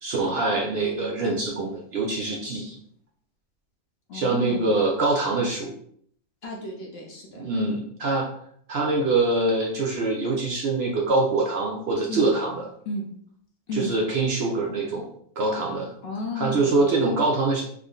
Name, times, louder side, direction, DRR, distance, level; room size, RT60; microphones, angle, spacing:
voice 1, 0.0-2.8 4.1-5.7 7.4-8.3 8.7-12.7 13.7-15.1 15.4-15.9 16.4-17.6, right 3 dB, 60° right, -1 dB, 0.7 m, -24 dB
voice 2, 4.1-4.7 6.4-7.5 12.1-12.3 12.9-13.1 13.7-13.9 16.0-16.9, left 1 dB, 60° left, -1 dB, 0.7 m, -33 dB
3.6 x 2.1 x 3.7 m, 0.64 s
omnidirectional pair, 1.5 m